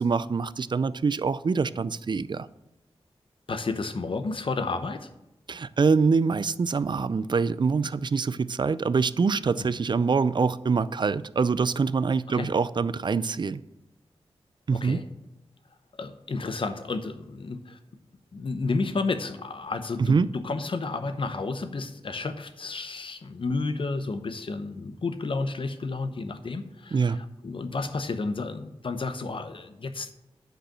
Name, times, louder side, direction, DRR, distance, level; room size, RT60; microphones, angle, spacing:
voice 1, 0.0-2.5 5.5-13.6 14.7-15.0 20.1-20.3 26.9-27.2, right 5 dB, 45° right, 17 dB, 0.4 m, -25 dB
voice 2, 3.5-5.1 12.3-12.5 14.7-15.1 15.9-17.8 18.3-30.1, left 3 dB, 55° left, 9 dB, 0.9 m, -31 dB
9.1 x 4.9 x 7.4 m, 0.93 s
wide cardioid pair, 65°, 11 cm